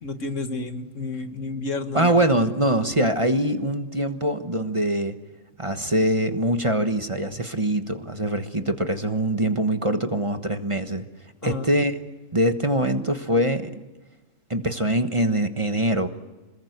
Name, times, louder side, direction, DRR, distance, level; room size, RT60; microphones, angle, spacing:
voice 1, 0.0-2.2 11.4-11.7, left 3 dB, 75° left, 7 dB, 2.1 m, -31 dB
voice 2, 1.9-5.1 5.6-11.1 11.4-11.9 12.3-13.8 14.5-16.1, right 1 dB, 25° right, 7 dB, 1.3 m, -23 dB
27.5 x 20.5 x 8.1 m, 1.1 s
omnidirectional pair, 1.3 m